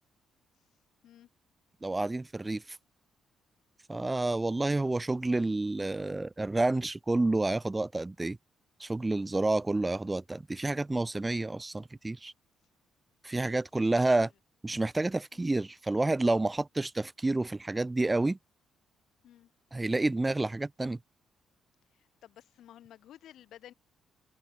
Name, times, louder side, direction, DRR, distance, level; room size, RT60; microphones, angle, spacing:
voice 1, 1.8-2.8 3.9-8.4 8.8-12.3 13.2-14.3 14.6-18.4 19.7-21.0, right 2 dB, 15° right, 0.6 m, -29 dB
voice 2, 13.9-14.3 15.3-15.5 19.2-19.5 21.9-23.7, left 11 dB, 75° left, 5.6 m, -53 dB
cardioid pair, 90°, 0 cm